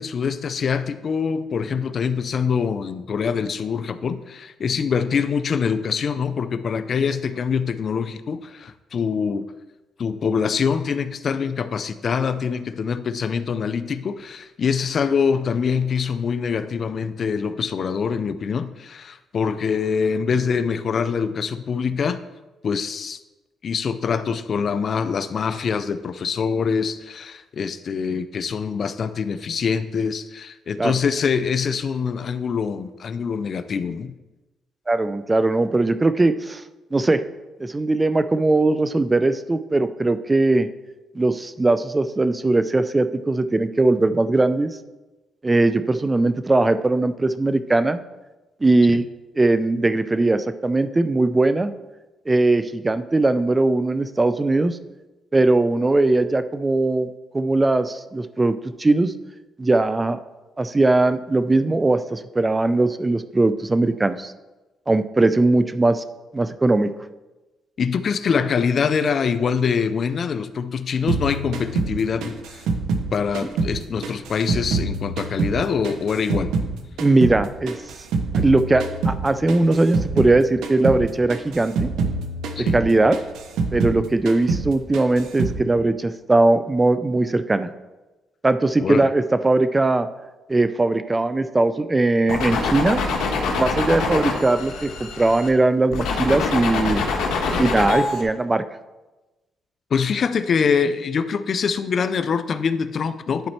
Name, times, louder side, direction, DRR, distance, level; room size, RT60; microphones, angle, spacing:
voice 1, 0.0-9.5 10.0-22.2 22.6-23.2 23.6-34.1 48.9-49.0 67.8-72.6 73.1-76.5 82.6-82.8 88.8-89.1 99.9-103.5, left 6 dB, 50° left, 12 dB, 0.4 m, -24 dB
voice 2, 34.9-36.6 36.9-37.2 37.6-40.7 41.1-44.8 45.4-48.0 48.6-49.1 49.4-51.7 52.3-54.8 55.3-59.1 59.6-60.2 60.6-64.3 64.9-66.0 66.3-66.9 77.0-77.7 78.3-81.9 82.7-83.2 83.7-87.7 88.4-90.1 90.5-93.0 93.6-97.0 97.6-98.6, right 2 dB, 20° right, 12 dB, 0.4 m, -20 dB
sound 1, 71.1-73.8 74.0-76.7 77.0-80.4 80.6-81.0 81.3-84.0 84.3-84.7 84.9-85.6, right 4 dB, 85° right, 0.7 m, -25 dB
sound 2, 92.3-95.5 95.9-98.2, left 4 dB, 85° left, 1.2 m, -24 dB
10.5 x 4.3 x 4.3 m, 1.1 s
cardioid pair, 90°, 0 cm